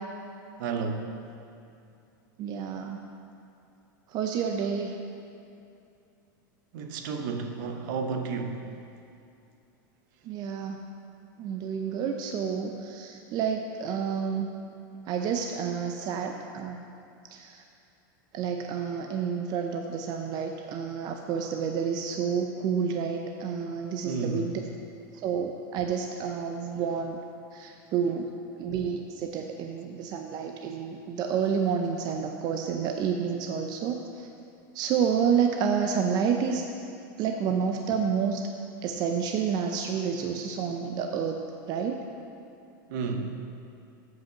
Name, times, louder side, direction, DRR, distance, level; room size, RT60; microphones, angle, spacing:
voice 1, 0.6-1.1 6.7-8.7 16.0-16.1 24.0-24.7 26.7-26.8 42.9-43.4, right 4 dB, 65° right, 5 dB, 0.9 m, -32 dB
voice 2, 2.4-3.0 4.1-4.9 10.3-10.8 11.4-14.5 15.1-16.8 17.3-17.6 18.3-24.5 25.2-27.2 27.5-28.3 28.6-34.3 34.7-36.6 37.2-38.5 38.8-41.4 41.7-42.1, right 7 dB, 40° right, 3 dB, 0.5 m, -29 dB
7.6 x 5.7 x 6.9 m, 2.6 s
supercardioid pair, 135°, 11 cm